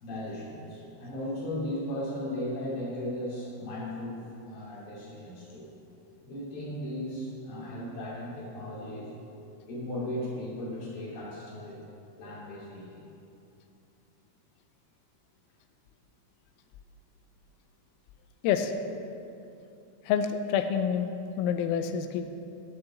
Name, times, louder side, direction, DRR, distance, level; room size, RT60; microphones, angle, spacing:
voice 1, 0.0-5.7 6.2-9.1 9.7-11.8 12.2-13.0, left 1 dB, 50° left, -7 dB, 4.1 m, -36 dB
voice 2, 20.1-21.1 21.4-22.3, left 8 dB, 90° left, 8 dB, 3.4 m, -27 dB
8.7 x 7.7 x 7.5 m, 2.7 s
omnidirectional pair, 5.9 m